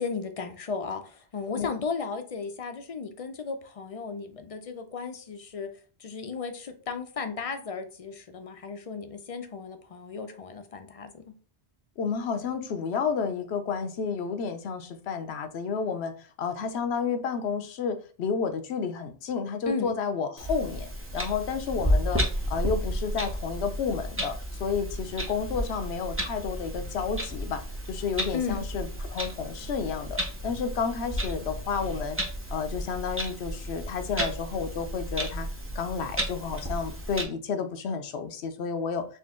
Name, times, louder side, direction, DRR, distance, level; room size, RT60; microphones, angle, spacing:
voice 1, 0.0-5.7 6.0-11.3 19.7-19.9 28.3-28.6, left 5 dB, 45° left, 8 dB, 0.5 m, -35 dB
voice 2, 12.0-16.1 16.4-22.2 22.5-27.6 27.9-32.2 32.5-35.5 35.7-39.1, left 6 dB, 80° left, 8 dB, 0.9 m, -31 dB
Clock, 20.4-37.2, equal, 15° right, 0.6 m, -32 dB
4.3 x 2.6 x 3.6 m, 0.39 s
omnidirectional pair, 1.1 m